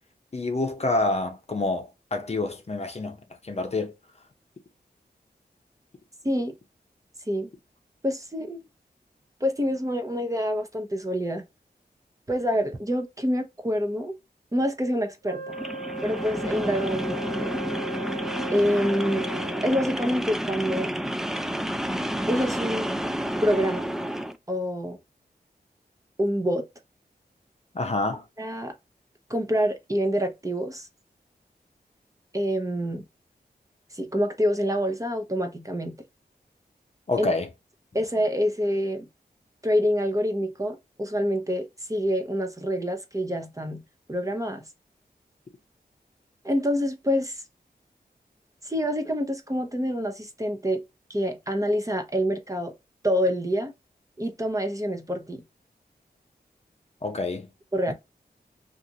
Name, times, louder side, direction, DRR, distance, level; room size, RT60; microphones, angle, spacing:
voice 1, 0.3-3.2 3.4-3.9 27.7-28.2 37.1-37.5 57.0-57.5 57.9-58.0, left 2 dB, 40° left, 0.7 m, -27 dB
voice 2, 8.0-8.6 9.4-11.4 12.3-14.1 14.5-15.5 16.0-17.5 18.5-19.3 19.6-20.9 22.3-22.9 23.4-23.9 24.5-25.0 26.2-26.6 28.4-28.7 29.3-30.9 32.3-33.0 33.9-36.0 37.2-37.3 37.9-39.1 39.6-43.8 44.1-44.6 46.4-47.4 48.6-50.8 51.1-52.7 53.0-53.7 54.2-55.4 57.7-57.9, equal, 20° right, 0.7 m, -26 dB
Wind instrument woodwind instrument, 15.2-19.9, right 2 dB, 90° right, 1.1 m, -37 dB
sound 1, 15.5-24.4, equal, 5° right, 0.3 m, -30 dB
2.5 x 2.5 x 2.8 m
wide cardioid pair, 70°, 17 cm